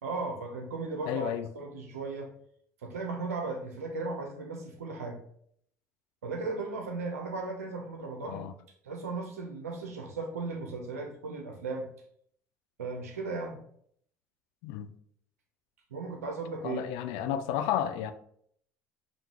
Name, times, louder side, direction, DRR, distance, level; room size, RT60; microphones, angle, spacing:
voice 1, 0.0-2.3 2.8-5.2 6.2-8.4 8.8-11.9 12.8-13.6 15.9-17.4, right 3 dB, 85° right, 0.7 m, -36 dB
voice 2, 1.1-1.5 8.3-8.5 14.6-14.9 16.6-18.1, left 10 dB, 70° left, 0.4 m, -32 dB
5.3 x 2.7 x 2.9 m
hypercardioid pair, 65°, 8 cm